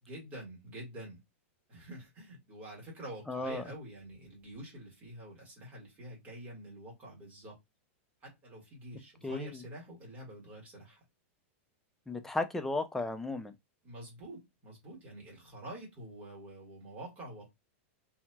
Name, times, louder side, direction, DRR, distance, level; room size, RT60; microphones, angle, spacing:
voice 1, 0.0-1.2 1.7-7.6 8.2-11.0 13.8-17.5, right 1 dB, 20° right, 1.6 m, -47 dB
voice 2, 3.3-3.6 9.2-9.6 12.1-13.5, left 2 dB, 5° left, 0.3 m, -34 dB
2.7 x 2.7 x 2.2 m
supercardioid pair, 155°, 7 cm